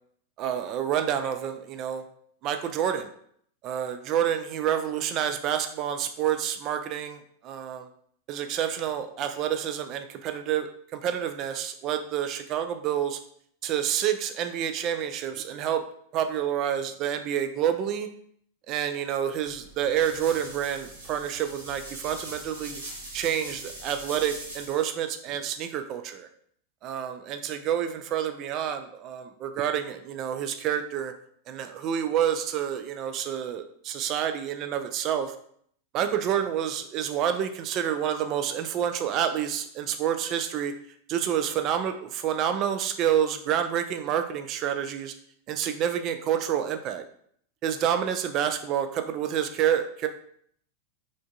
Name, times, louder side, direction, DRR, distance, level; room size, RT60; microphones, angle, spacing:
voice 1, 0.4-2.0 2.4-3.1 3.6-7.2 7.4-7.9 8.3-13.2 13.6-15.8 16.1-18.1 18.7-22.8 23.1-26.3 26.8-31.1 31.5-35.3 35.9-40.7 41.1-45.1 45.5-47.0 47.6-50.1, right 9 dB, 35° right, 8 dB, 0.3 m, -28 dB
sound 1, 19.5-24.8, right 1 dB, 75° right, 0.9 m, -41 dB
3.4 x 2.5 x 2.3 m, 0.63 s
figure-of-eight pair, 90°, 0 cm